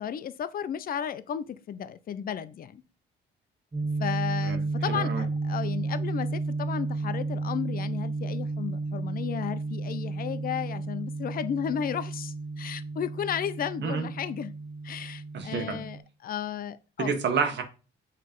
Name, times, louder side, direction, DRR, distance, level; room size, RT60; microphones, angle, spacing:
voice 1, 0.0-2.8 4.0-14.5 14.8-17.1, left 9 dB, 45° left, 0.5 m, -34 dB
sound 1, 3.7-16.0, right 3 dB, 30° right, 1.7 m, -32 dB
voice 2, 4.9-5.2 13.8-14.1 15.3-15.8 17.0-17.6, right 5 dB, 65° right, 1.3 m, -29 dB
5.8 x 3.2 x 5.2 m
cardioid pair, 90°, 20 cm